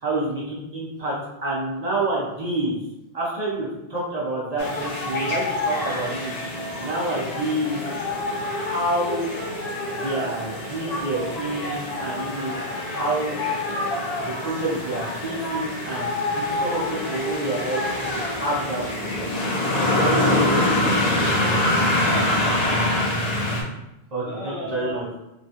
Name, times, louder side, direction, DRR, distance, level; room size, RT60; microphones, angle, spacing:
voice 1, 0.0-1.1 1.4-2.8 3.1-6.3 6.8-7.8 8.3-9.3 9.9-13.4 14.2-17.8 18.1-19.3 20.0-21.1 24.1-25.2, right 1 dB, 45° right, -6 dB, 0.6 m, -28 dB
sound 1, 4.6-23.6, left 1 dB, 50° left, 0.5 m, -25 dB
voice 2, 22.0-23.1 24.2-25.0, right 1 dB, 75° left, -6 dB, 1.3 m, -34 dB
3.0 x 2.2 x 2.7 m, 0.92 s
omnidirectional pair, 1.1 m